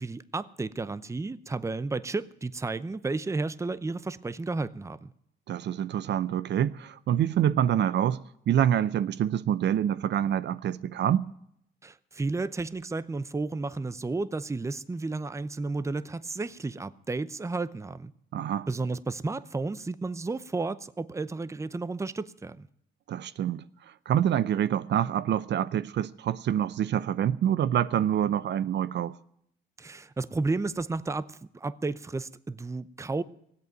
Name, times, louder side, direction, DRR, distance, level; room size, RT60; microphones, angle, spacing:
voice 1, 0.0-5.1 11.8-18.1 18.7-22.7 29.8-33.2, right 3 dB, 15° right, 0.6 m, -32 dB
voice 2, 5.5-11.3 18.3-18.7 23.1-29.2, right 10 dB, 60° right, 0.6 m, -26 dB
17.0 x 8.3 x 9.0 m
cardioid pair, 90°, 20 cm